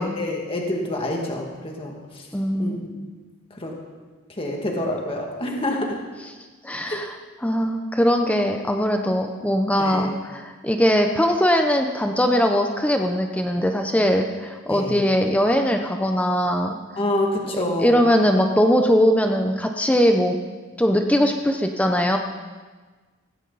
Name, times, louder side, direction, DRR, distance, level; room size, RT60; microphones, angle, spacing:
voice 1, 0.0-2.0 2.6-2.7 3.6-3.7 4.4-5.9 6.9-7.0 9.8-10.1 14.7-15.0 17.0-18.0, left 1 dB, 25° left, 0 dB, 2.2 m, -26 dB
voice 2, 2.3-2.9 6.2-6.3 6.6-16.8 17.5-20.4 20.8-22.2, equal, 5° left, 4 dB, 0.8 m, -21 dB
17.0 x 16.0 x 4.1 m, 1.4 s
head